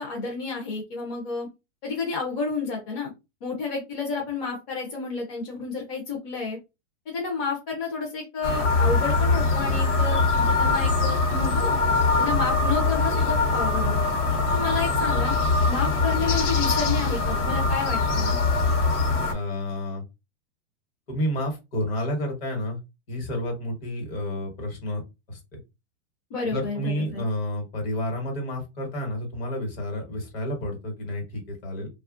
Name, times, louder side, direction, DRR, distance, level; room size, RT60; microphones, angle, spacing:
voice 1, 0.0-1.5 1.8-3.1 3.4-6.6 7.1-11.8 12.2-14.1 14.5-15.3 15.7-18.4 26.3-27.2, left 4 dB, 30° left, -1 dB, 0.6 m, -30 dB
sound 1, 8.4-19.3, left 3 dB, 70° left, 1.0 m, -22 dB
voice 2, 19.3-20.0 21.1-22.8 23.1-25.0 25.3-25.6 26.5-31.9, left 1 dB, 50° left, 3 dB, 1.2 m, -30 dB
2.9 x 2.3 x 2.4 m, 0.25 s
supercardioid pair, 175°, 37 cm